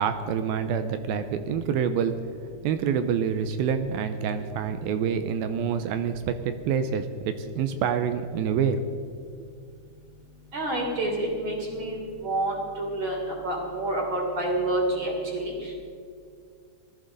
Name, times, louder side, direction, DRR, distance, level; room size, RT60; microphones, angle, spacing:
voice 1, 0.0-2.1 2.6-8.8, right 7 dB, 80° right, 9 dB, 2.3 m, -27 dB
voice 2, 10.5-15.7, right 1 dB, 30° right, -1 dB, 3.6 m, -28 dB
19.0 x 14.0 x 4.0 m, 2.2 s
omnidirectional pair, 4.7 m